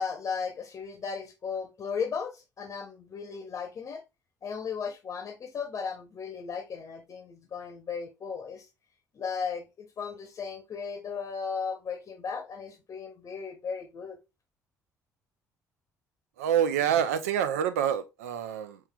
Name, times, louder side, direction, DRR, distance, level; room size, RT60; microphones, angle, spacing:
voice 1, 0.0-4.0 4.4-8.7 9.1-14.2, left 6 dB, 40° left, 0.8 m, -36 dB
voice 2, 16.4-18.8, right 9 dB, 70° right, 0.5 m, -27 dB
5.6 x 3.1 x 2.2 m
figure-of-eight pair, 50°, 8 cm